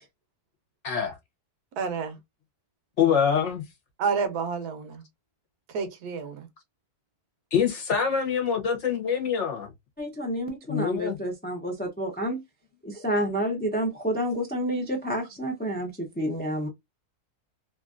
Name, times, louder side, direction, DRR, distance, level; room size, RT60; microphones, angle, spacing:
voice 1, 0.8-1.2 3.0-3.6 7.5-9.7 10.7-11.2, left 7 dB, 55° left, 1.0 m, -25 dB
voice 2, 1.8-2.2 4.0-5.0 5.7-6.5, right 5 dB, 80° right, 1.2 m, -29 dB
voice 3, 10.0-12.4 12.8-16.7, equal, 15° left, 0.3 m, -29 dB
3.0 x 2.5 x 2.4 m
omnidirectional pair, 1.6 m